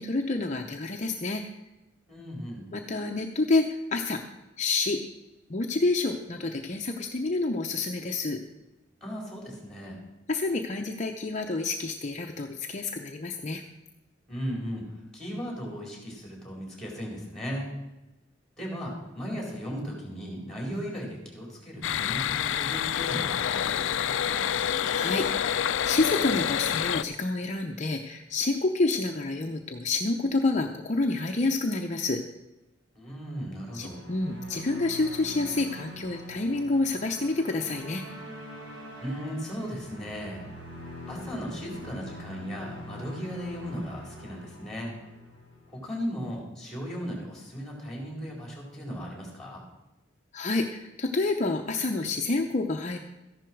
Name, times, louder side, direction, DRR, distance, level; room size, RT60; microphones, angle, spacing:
voice 1, 0.0-1.4 2.7-4.2 4.6-5.0 5.5-8.4 10.3-13.6 24.8-32.2 33.7-38.0 50.3-53.0, left 3 dB, 40° left, 3 dB, 0.7 m, -28 dB
voice 2, 2.1-2.7 9.0-10.0 14.3-14.9 15.1-17.7 18.6-24.5 32.9-34.0 39.0-40.5 41.1-44.9 45.7-49.6, equal, 5° left, -2 dB, 4.4 m, -36 dB
sound 1, 21.8-27.0, left 9 dB, 80° left, 0.4 m, -27 dB
sound 2, 33.6-46.0, left 1 dB, 80° right, 3.9 m, -44 dB
14.0 x 11.0 x 4.6 m, 1.0 s
head